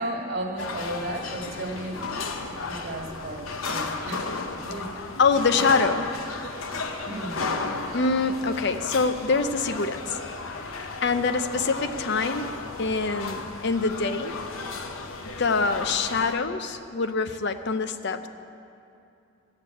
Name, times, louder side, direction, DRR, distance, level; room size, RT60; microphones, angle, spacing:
voice 1, 0.0-2.2 2.6-4.3 4.6-4.9 7.0-7.4, right 1 dB, 50° right, 0 dB, 1.8 m, -34 dB
sound 1, 0.6-16.3, left 3 dB, 90° left, 0.9 m, -34 dB
voice 2, 5.2-6.1 7.9-10.2 10.6-14.4 15.4-18.3, left 4 dB, 55° left, 9 dB, 0.6 m, -25 dB
15.0 x 6.7 x 8.4 m, 2.6 s
head